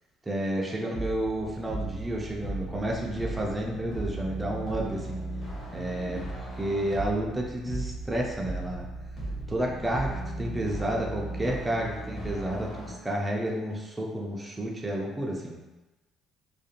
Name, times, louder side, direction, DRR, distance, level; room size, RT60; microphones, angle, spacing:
voice 1, 0.3-5.2 5.7-8.9 9.5-15.5, right 1 dB, 10° right, -2 dB, 0.3 m, -31 dB
sound 1, 0.9-12.9, right 1 dB, 40° left, 0.9 m, -36 dB
2.4 x 2.1 x 2.7 m, 1.1 s
cardioid pair, 140°, 0 cm